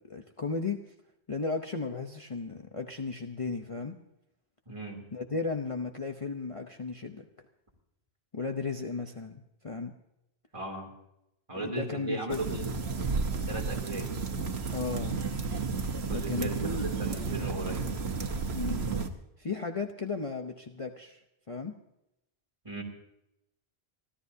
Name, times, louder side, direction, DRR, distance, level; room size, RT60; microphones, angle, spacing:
voice 1, 0.1-0.9 1.3-4.0 5.1-7.3 8.3-9.9 11.5-12.6 14.7-15.2 16.1-16.9 18.5-18.8 19.4-21.2 21.5-21.8, left 4 dB, 35° left, 4 dB, 0.8 m, -35 dB
voice 2, 4.7-5.1 10.5-10.9 11.5-12.7 13.5-14.1 16.0-17.9 22.6-22.8, right 2 dB, 30° right, 0 dB, 3.1 m, -37 dB
sound 1, 12.3-19.1, right 4 dB, 80° right, 1.4 m, -32 dB
30.0 x 13.0 x 2.8 m, 0.85 s
omnidirectional pair, 1.1 m